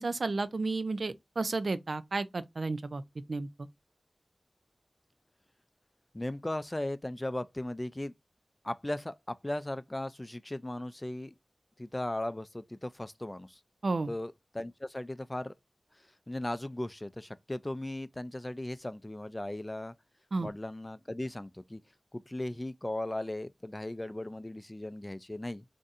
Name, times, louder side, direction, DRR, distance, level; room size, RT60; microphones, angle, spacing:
voice 1, 0.0-3.0 3.3-3.5 13.8-14.1 20.3-20.5, right 3 dB, 75° right, 0.4 m, -32 dB
voice 2, 6.1-8.1 8.6-11.3 11.8-13.6 14.1-15.5 16.3-19.9 20.4-21.8 22.1-25.6, left 1 dB, 25° left, 0.3 m, -37 dB
2.6 x 2.4 x 3.9 m
wide cardioid pair, 50°, 0 cm